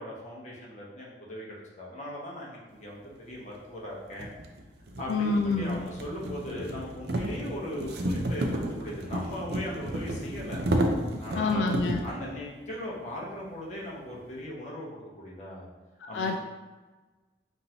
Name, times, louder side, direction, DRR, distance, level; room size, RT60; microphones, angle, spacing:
voice 1, 0.0-4.3 5.0-10.6 11.2-11.8 12.0-15.7 16.1-16.3, left 1 dB, 40° left, -5 dB, 1.0 m, -38 dB
sound 1, 3.3-3.4 4.1-12.1, right 1 dB, 60° right, 0.5 m, -32 dB
voice 2, 5.1-5.9 11.3-12.0 16.1-16.3, left 3 dB, 85° left, 4 dB, 0.3 m, -27 dB
5.3 x 2.6 x 2.9 m, 1.2 s
head